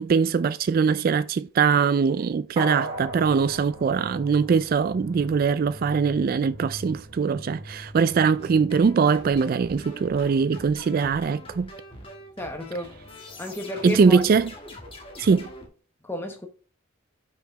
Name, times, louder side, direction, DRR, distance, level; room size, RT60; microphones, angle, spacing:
voice 1, 0.0-11.7 13.8-14.5 15.2-15.5, right 5 dB, 45° right, 0.3 m, -22 dB
sound 1, 2.6-5.1 5.5-5.6, right 2 dB, 25° right, 2.5 m, -35 dB
sound 2, 2.9-15.1 15.3-15.8, equal, 70° right, 2.0 m, -46 dB
sound 3, 8.4-15.7, left 1 dB, 25° left, 1.6 m, -43 dB
voice 2, 12.4-12.9 13.4-14.2 16.0-16.5, left 1 dB, 10° left, 0.9 m, -32 dB
5.6 x 4.7 x 5.1 m
head